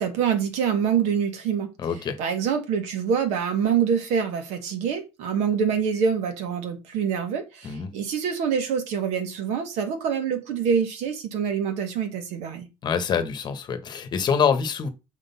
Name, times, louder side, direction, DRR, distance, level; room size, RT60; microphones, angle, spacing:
voice 1, 0.0-1.7 2.2-12.7, right 7 dB, 80° right, 1.8 m, -25 dB
voice 2, 1.8-2.2 7.6-7.9 12.8-14.9, left 6 dB, 40° left, 1.2 m, -25 dB
6.4 x 3.8 x 5.6 m
cardioid pair, 125°, 11 cm